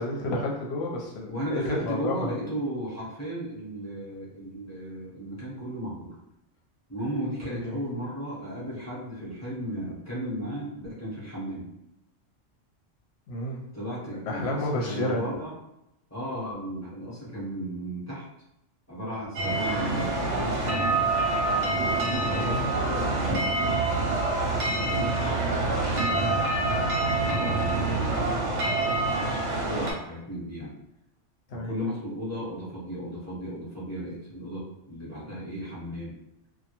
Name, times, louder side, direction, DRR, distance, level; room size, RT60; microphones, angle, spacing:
voice 1, 0.0-2.3 7.6-7.8 13.3-13.6 14.3-15.2 31.5-31.7, left 2 dB, 65° left, -1 dB, 0.8 m, -30 dB
voice 2, 1.3-6.1 6.9-11.7 13.7-15.5 16.1-18.2 18.9-20.9 21.6-23.7 24.9-25.6 25.9-26.8 27.6-30.7 31.5-36.2, right 1 dB, 15° left, -8 dB, 0.7 m, -35 dB
sound 1, 19.4-29.9, right 2 dB, 75° right, 1.0 m, -26 dB
2.2 x 2.1 x 2.8 m, 0.85 s
omnidirectional pair, 1.3 m